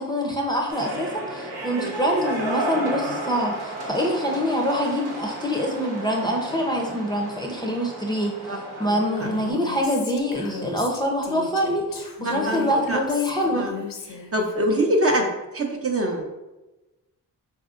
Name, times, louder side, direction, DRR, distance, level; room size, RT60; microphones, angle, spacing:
voice 1, 0.0-13.7, equal, 10° left, 0 dB, 0.6 m, -25 dB
sound 1, 0.7-9.5, right 1 dB, 75° right, 0.9 m, -33 dB
Female speech woman speaking, 9.2-14.5, left 6 dB, 55° left, 0.6 m, -36 dB
voice 2, 12.2-13.0 13.5-13.7 14.1-16.2, right 1 dB, 35° right, 1 dB, 0.6 m, -24 dB
4.0 x 2.7 x 2.5 m, 1.1 s
supercardioid pair, 45°, 40 cm